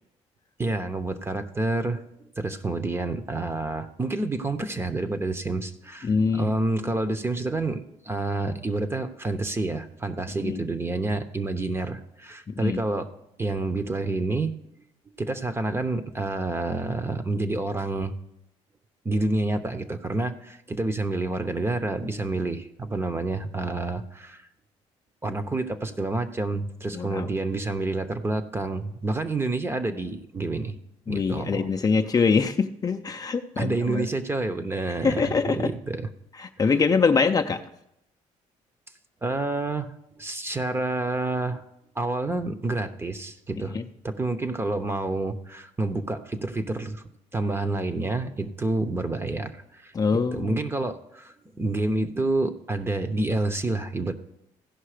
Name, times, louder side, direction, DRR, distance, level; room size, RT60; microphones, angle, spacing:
voice 1, 0.6-2.0 2.4-13.1 13.4-14.5 15.2-18.1 19.0-24.5 25.2-30.8 31.1-31.7 33.6-36.1 36.6-36.7 39.2-39.9 40.2-41.6 42.0-43.8 44.0-47.0 47.3-54.1, right 2 dB, 20° right, 10 dB, 0.8 m, -28 dB
voice 2, 6.0-6.5 10.4-10.7 12.5-12.8 26.9-27.3 31.1-34.1 35.0-35.7 36.4-37.6 43.7-43.8 49.9-50.6, left 5 dB, 30° left, 6 dB, 0.6 m, -24 dB
15.5 x 5.5 x 5.0 m, 0.82 s
cardioid pair, 100°, 13 cm